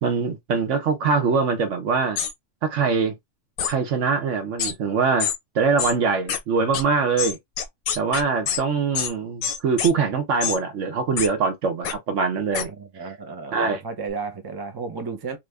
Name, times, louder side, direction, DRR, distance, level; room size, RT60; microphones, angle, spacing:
voice 1, 0.0-2.2 2.6-3.1 3.7-5.3 5.5-7.4 8.0-12.7 13.5-13.8, right 5 dB, 60° right, 1.1 m, -23 dB
sound 1, 2.2-2.3 3.6-3.7 4.6-4.7 5.2-5.4 5.8-5.9 6.3-6.4 6.7-6.8 7.2-8.6 8.9-9.1 9.4-9.9 10.4-10.6 11.2-11.3 11.8-11.9 12.5-12.6, left 8 dB, 80° left, 1.1 m, -26 dB
voice 2, 12.7-15.4, right 4 dB, 35° right, 0.4 m, -33 dB
2.7 x 2.5 x 3.3 m
omnidirectional pair, 1.5 m